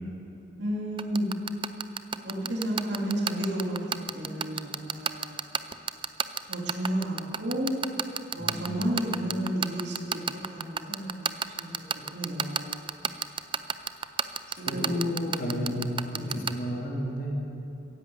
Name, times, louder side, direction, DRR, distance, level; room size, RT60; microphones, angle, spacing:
voice 1, 0.6-1.3 2.2-5.4 6.5-7.7 8.3-11.7 12.1-12.8 14.5-15.7 16.1-16.4, right 1 dB, 65° right, -3 dB, 2.9 m, -32 dB
sound 1, 1.0-16.5, right 7 dB, 25° right, 0.5 m, -28 dB
voice 2, 8.4-8.7 14.6-17.3, equal, 50° left, -3 dB, 3.3 m, -32 dB
17.0 x 11.0 x 7.9 m, 2.8 s
head